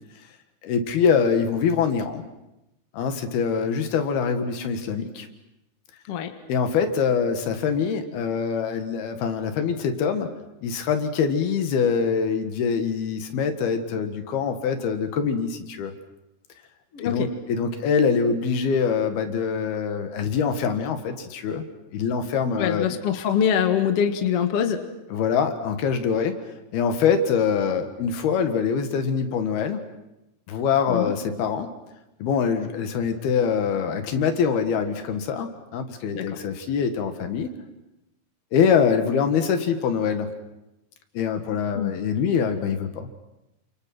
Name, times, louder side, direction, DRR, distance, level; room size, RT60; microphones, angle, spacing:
voice 1, 0.6-2.2 2.9-5.3 6.5-10.4 10.6-15.9 17.0-21.7 21.9-23.0 25.1-26.4 26.7-29.8 30.5-31.7 32.2-37.5 38.5-40.3 41.2-43.1, left 6 dB, 70° left, 7 dB, 3.6 m, -24 dB
voice 2, 16.9-17.3 22.6-24.8 30.9-31.1 36.1-36.3 41.8-41.9, left 8 dB, 50° left, 6 dB, 2.0 m, -24 dB
29.0 x 27.5 x 6.1 m, 0.92 s
omnidirectional pair, 4.7 m